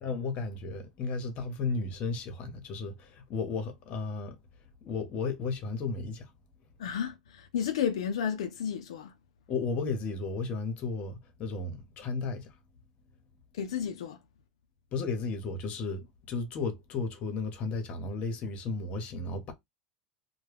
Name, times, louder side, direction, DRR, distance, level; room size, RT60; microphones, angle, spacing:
voice 1, 0.0-4.4 4.8-6.3 9.5-12.6 14.9-19.5, left 4 dB, 45° left, 0.8 m, -34 dB
voice 2, 6.8-9.1 13.5-14.2, left 8 dB, 85° left, 0.4 m, -32 dB
2.2 x 2.1 x 3.3 m
supercardioid pair, 110°, 3 cm